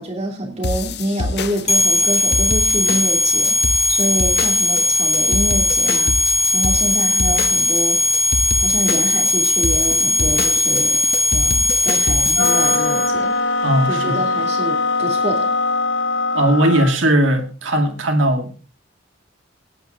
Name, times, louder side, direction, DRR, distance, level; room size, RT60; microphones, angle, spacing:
voice 1, 0.0-3.6 3.9-6.1 6.5-8.0 8.6-11.0 11.3-13.3 13.9-15.5, right 1 dB, 35° right, 2.8 m, -26 dB
sound 1, 0.6-12.5, left 3 dB, 55° left, 0.8 m, -25 dB
sound 2, 1.7-13.1, left 2 dB, 35° left, 2.6 m, -18 dB
sound 3, 12.3-17.0, left 3 dB, 90° left, 0.8 m, -21 dB
voice 2, 13.6-14.3 16.3-18.5, right 1 dB, 85° right, 2.4 m, -18 dB
17.0 x 10.5 x 3.8 m
head